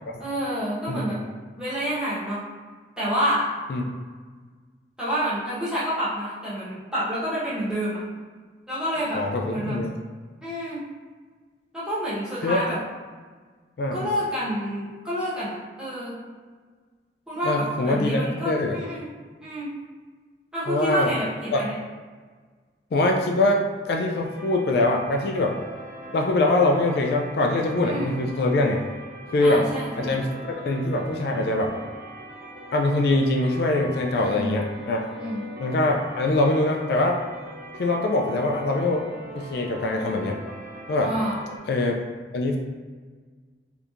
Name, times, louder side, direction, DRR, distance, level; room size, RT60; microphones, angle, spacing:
voice 1, 0.2-1.2 1.6-2.4 3.0-3.5 5.0-8.0 8.7-9.2 9.5-9.8 10.4-10.8 11.7-12.8 13.9-16.1 17.3-19.1 19.4-19.7 20.5-21.7 27.8-28.1 29.4-30.2 34.1-34.6 35.2-35.4 41.0-41.4, equal, 5° right, -11 dB, 1.0 m, -28 dB
voice 2, 9.1-9.9 12.4-12.6 13.8-14.1 17.4-18.8 20.7-21.1 21.5-21.6 22.9-25.5 26.1-28.9 29.3-29.6 30.0-31.7 32.7-35.0 35.6-37.2 37.8-39.0 39.3-40.4 40.9-41.1 41.7-42.0 42.3-42.6, left 2 dB, 60° left, 1 dB, 0.3 m, -23 dB
sound 1, 24.2-41.6, right 1 dB, 50° right, 0.7 m, -41 dB
3.4 x 2.8 x 2.5 m, 1.5 s
head